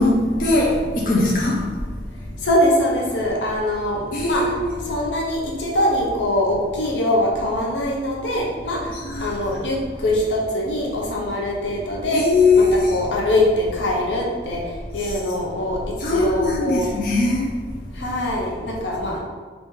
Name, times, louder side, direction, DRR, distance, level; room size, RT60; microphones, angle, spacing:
voice 1, 0.0-1.7 4.1-4.8 8.9-9.3 12.1-12.9 15.0-15.1 16.0-17.5, left 2 dB, 45° left, -4 dB, 0.5 m, -20 dB
voice 2, 2.4-4.5 4.9-8.8 9.2-12.3 12.5-14.6 14.9-15.8 16.1-16.9 18.0-19.2, left 1 dB, 85° left, -2 dB, 0.7 m, -22 dB
3.4 x 2.7 x 3.1 m, 1.5 s
head